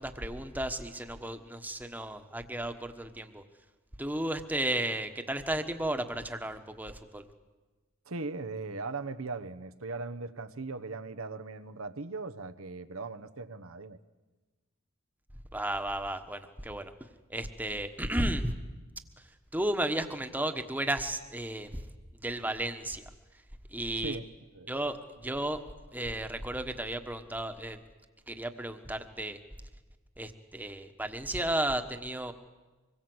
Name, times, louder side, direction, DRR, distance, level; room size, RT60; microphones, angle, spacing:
voice 1, 0.0-3.4 4.0-7.2 15.5-16.9 17.3-18.5 19.2-21.8 22.2-23.0 23.7-24.2 24.7-25.6 25.9-27.8 28.3-29.4 30.2-32.3, right 1 dB, 10° right, 1.3 m, -34 dB
voice 2, 8.0-14.0 24.0-24.3 24.5-24.7, right 3 dB, 75° right, 1.1 m, -39 dB
25.5 x 21.5 x 8.0 m
head